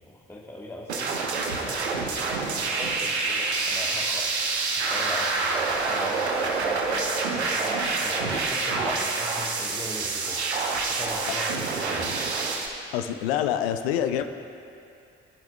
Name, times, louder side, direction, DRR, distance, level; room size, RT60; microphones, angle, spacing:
voice 1, 0.0-4.3 4.9-7.2 7.5-10.4 10.7-12.0, left 1 dB, 10° left, -4 dB, 1.4 m, -39 dB
sound 1, 0.9-12.7, right 3 dB, 85° right, 0.7 m, -27 dB
voice 2, 12.9-14.2, left 10 dB, 70° left, 9 dB, 0.6 m, -26 dB
27.0 x 10.5 x 2.3 m, 2.6 s
figure-of-eight pair, 40°, 32 cm